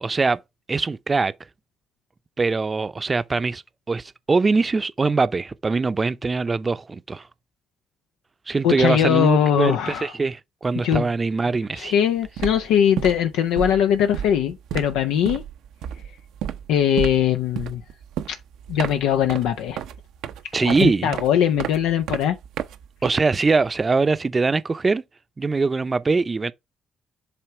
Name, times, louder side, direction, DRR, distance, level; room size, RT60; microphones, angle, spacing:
voice 1, 0.0-0.4 0.7-1.3 2.4-3.6 3.9-7.3 8.5-11.9 20.5-21.2 23.0-25.0 25.4-26.5, right 4 dB, 30° right, 0.6 m, -22 dB
voice 2, 8.6-10.1 10.8-11.1 11.7-15.4 16.7-17.8 18.3-18.4 18.7-19.8 20.6-22.4, left 9 dB, 85° left, 0.6 m, -21 dB
sound 1, 11.8-12.0 12.2-23.7, right 10 dB, 80° right, 0.6 m, -33 dB
7.7 x 3.4 x 4.5 m
supercardioid pair, 65°, 0 cm